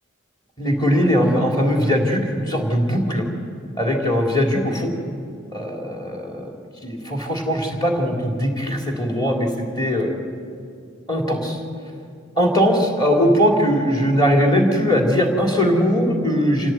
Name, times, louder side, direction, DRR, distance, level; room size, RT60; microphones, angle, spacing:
voice 1, 0.6-3.3 3.8-4.9 5.5-6.5 6.8-10.1 11.1-11.6 12.4-16.7, equal, 20° left, 1 dB, 3.5 m, -20 dB
27.0 x 17.0 x 9.5 m, 2.4 s
head